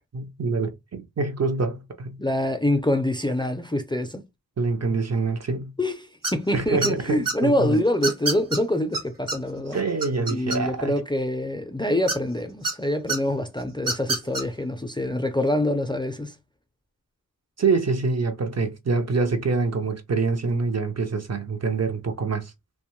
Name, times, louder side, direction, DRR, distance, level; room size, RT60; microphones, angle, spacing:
voice 1, 0.1-2.2 4.6-5.7 6.5-7.8 9.7-10.9 17.6-22.5, right 4 dB, 50° right, 0.5 m, -25 dB
voice 2, 2.2-4.2 5.8-9.8 10.3-16.3, left 1 dB, 15° left, 0.4 m, -25 dB
sound 1, 6.2-6.5 6.8-7.3 8.0-8.6 8.9-9.0 9.3-9.4 9.7-10.9 12.1-12.7 13.1-13.2 13.8-14.4, right 3 dB, 70° right, 1.0 m, -26 dB
2.6 x 2.2 x 3.0 m
wide cardioid pair, 50°, 34 cm